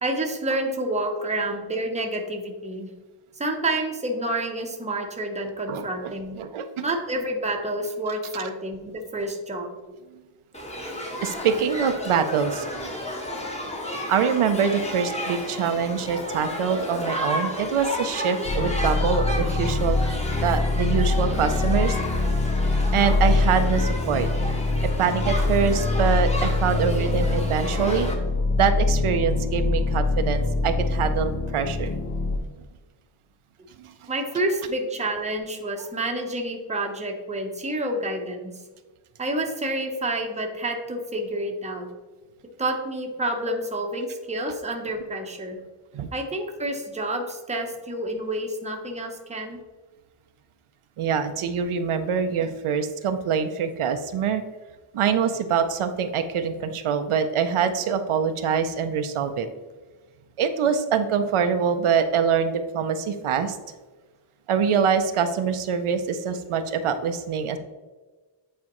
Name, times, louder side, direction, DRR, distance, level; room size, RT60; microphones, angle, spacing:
voice 1, 0.0-2.9 3.4-6.4 6.8-10.0 34.1-38.5 39.2-41.9 42.6-45.6 46.1-49.6, right 1 dB, 15° right, 2 dB, 0.7 m, -29 dB
voice 2, 5.7-6.8 11.2-12.9 14.1-22.0 22.6-24.3 25.0-28.1 28.6-31.9 33.8-33.9 45.9-46.1 51.0-54.4 54.9-59.5 60.4-63.6 64.5-67.6, right 7 dB, 80° right, 8 dB, 0.6 m, -24 dB
Shout / Human group actions, 10.5-28.1, equal, 15° left, 1.0 m, -32 dB
sound 1, 18.4-32.4, left 2 dB, 35° left, 0.6 m, -24 dB
8.4 x 4.2 x 3.0 m, 1.3 s
wide cardioid pair, 150°, 50 cm